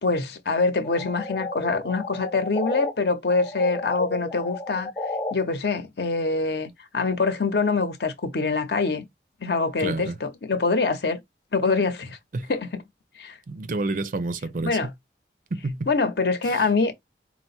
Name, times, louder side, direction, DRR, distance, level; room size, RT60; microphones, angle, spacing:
voice 1, 0.0-4.9 5.3-9.1 9.4-11.2 11.5-12.2 12.5-12.8 13.2-13.4 14.6-14.9 15.9-16.9, left 4 dB, 65° left, 0.8 m, -24 dB
sound 1, 0.8-2.9 3.3-5.3, left 2 dB, 20° left, 0.5 m, -33 dB
voice 2, 9.8-10.2 12.3-12.5 13.5-14.9 15.5-15.9 16.5-16.7, right 2 dB, 45° right, 0.4 m, -29 dB
4.4 x 2.0 x 4.2 m
head